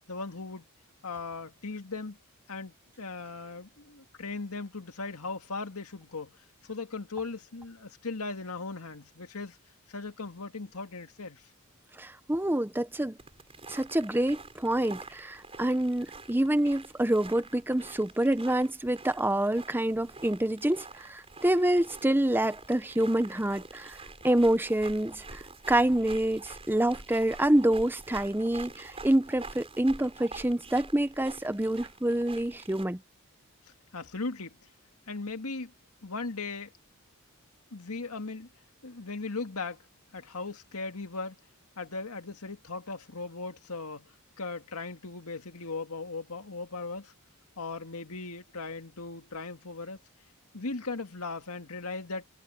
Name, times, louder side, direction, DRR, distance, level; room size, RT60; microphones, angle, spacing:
voice 1, 0.1-0.6 1.0-2.2 2.5-6.4 6.6-9.6 9.9-11.5 33.9-34.6 35.1-35.7 36.0-36.7 37.7-38.5 38.8-39.8 40.1-41.4 41.8-47.1 47.6-50.0 50.5-52.2, left 3 dB, 80° left, 2.0 m, -38 dB
voice 2, 12.0-13.2 13.7-24.0 24.2-33.0, right 1 dB, 10° right, 0.7 m, -27 dB
sound 1, 13.2-32.9, right 3 dB, 25° right, 6.8 m, -47 dB
head